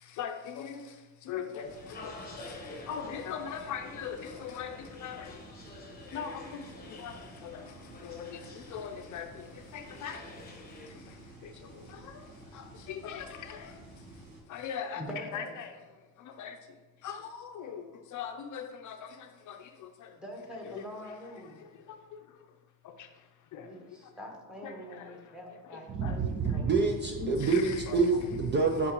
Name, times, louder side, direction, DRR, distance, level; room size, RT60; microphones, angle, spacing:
voice 1, 0.0-5.5 6.0-13.9 14.5-15.0 15.3-15.8 16.2-20.2 20.6-20.8 21.6-22.0 22.8-23.7 24.6-25.4 25.6-26.6 27.2-28.0 28.8-28.9, left 7 dB, 50° left, 6 dB, 0.6 m, -42 dB
sound 1, 1.6-14.4, right 2 dB, 65° right, 1.5 m, -51 dB
sound 2, 1.7-10.9, left 3 dB, 25° left, 1.0 m, -49 dB
voice 2, 14.9-15.6 20.2-21.6 23.6-26.7, equal, ahead, 0 dB, 1.2 m, -44 dB
voice 3, 25.9-28.9, right 4 dB, 30° right, 2 dB, 0.5 m, -27 dB
11.0 x 3.8 x 3.0 m, 1.2 s
cardioid pair, 145°, 38 cm